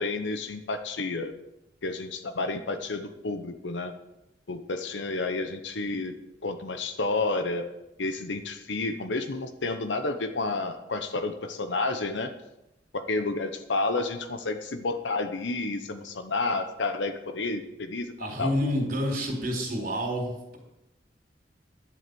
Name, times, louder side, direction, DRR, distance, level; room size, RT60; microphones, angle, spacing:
voice 1, 0.0-1.3 1.8-3.9 4.5-6.1 6.4-7.7 8.0-12.3 12.9-18.5, left 3 dB, 85° left, 7 dB, 0.9 m, -30 dB
voice 2, 18.2-20.6, equal, 50° right, 0 dB, 4.4 m, -28 dB
11.0 x 7.8 x 6.9 m, 0.90 s
head